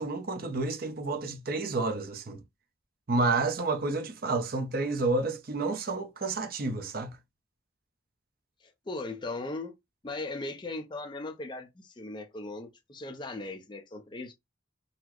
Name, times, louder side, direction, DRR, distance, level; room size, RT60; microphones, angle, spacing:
voice 1, 0.0-2.4 3.1-7.2, right 3 dB, 50° right, 0.6 m, -30 dB
voice 2, 8.6-9.7 10.0-14.3, left 2 dB, 25° left, 0.5 m, -38 dB
3.9 x 2.1 x 3.0 m
head